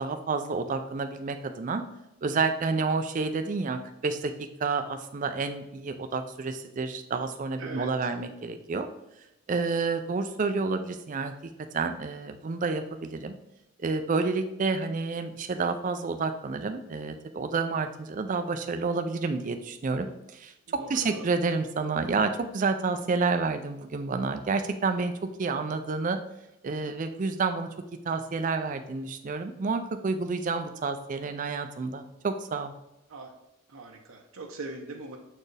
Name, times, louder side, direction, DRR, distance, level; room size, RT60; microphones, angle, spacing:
voice 1, 0.0-1.8 2.2-4.3 4.6-8.9 9.5-11.3 11.7-13.3 13.8-20.5 20.9-25.1 25.4-26.2 26.6-27.7 28.0-32.7, right 4 dB, 35° right, 8 dB, 0.4 m, -29 dB
voice 2, 7.6-7.9 20.8-21.3 33.1-33.3 33.7-35.2, right 2 dB, 65° right, 2 dB, 0.7 m, -40 dB
7.1 x 4.4 x 3.3 m, 0.89 s
head